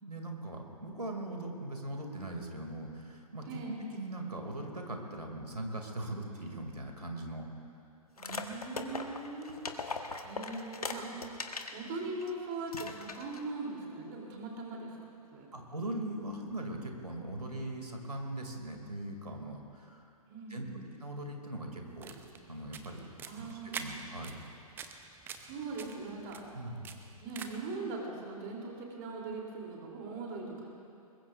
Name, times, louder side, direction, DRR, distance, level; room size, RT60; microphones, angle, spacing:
voice 1, 0.0-7.5 8.8-9.0 15.5-20.0 20.5-20.7 21.0-23.0 23.4-24.4 26.5-26.9, right 1 dB, 80° right, 2 dB, 2.6 m, -40 dB
voice 2, 3.5-3.9 8.1-9.5 10.2-11.2 11.7-15.5 20.3-20.9 23.3-24.0 25.3-26.4 27.2-30.7, right 3 dB, 30° right, -1 dB, 3.2 m, -41 dB
sound 1, 8.2-11.8 12.2-12.3 12.7-13.4, left 4 dB, 70° left, 1.3 m, -39 dB
sound 2, 21.8-27.8, right 6 dB, 10° right, 0.6 m, -47 dB
23.0 x 21.0 x 2.5 m, 2.5 s
figure-of-eight pair, 120°, 20 cm